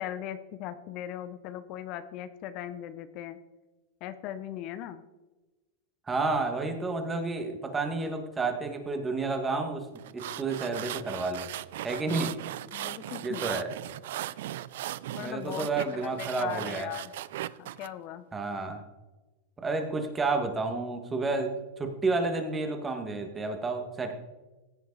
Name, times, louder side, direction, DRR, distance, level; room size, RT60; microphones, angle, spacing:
voice 1, 0.0-3.4 4.0-5.0 12.7-13.5 15.1-17.1 17.6-18.2, left 11 dB, 45° left, 12 dB, 0.8 m, -39 dB
voice 2, 6.1-9.9 10.1-11.5 11.8-12.4 13.2-13.7 15.2-16.9 18.3-18.8 19.6-24.1, right 3 dB, 15° right, 5 dB, 1.8 m, -30 dB
sound 1, 10.0-17.9, right 13 dB, 70° right, 0.4 m, -38 dB
16.0 x 8.0 x 4.1 m, 1.1 s
supercardioid pair, 130°, 0 cm